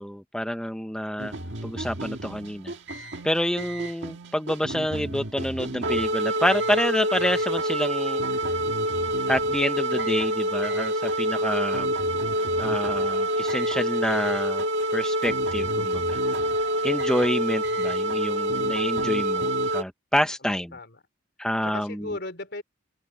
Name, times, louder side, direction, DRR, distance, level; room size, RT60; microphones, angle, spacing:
voice 1, 0.0-1.3 1.6-2.7 3.2-8.2 9.3-11.9 12.6-14.6 14.9-16.2 16.8-20.7 21.4-22.1, equal, 5° left, 0.9 m, -28 dB
sound 1, 1.2-19.8, right 1 dB, 75° right, 1.8 m, -27 dB
voice 2, 20.4-21.0 21.6-22.6, left 2 dB, 60° left, 4.1 m, -37 dB
head